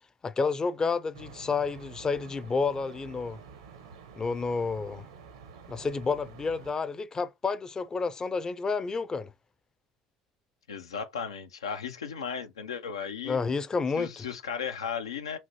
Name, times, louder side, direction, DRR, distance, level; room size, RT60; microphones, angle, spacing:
voice 1, 0.2-3.4 4.2-5.0 5.7-9.3 13.3-14.3, left 4 dB, 25° left, 0.5 m, -30 dB
sound 1, 1.1-6.7, right 6 dB, 80° right, 0.8 m, -49 dB
voice 2, 10.7-13.4 14.0-15.4, left 7 dB, 85° left, 0.4 m, -35 dB
5.6 x 2.6 x 2.9 m
hypercardioid pair, 65°, 3 cm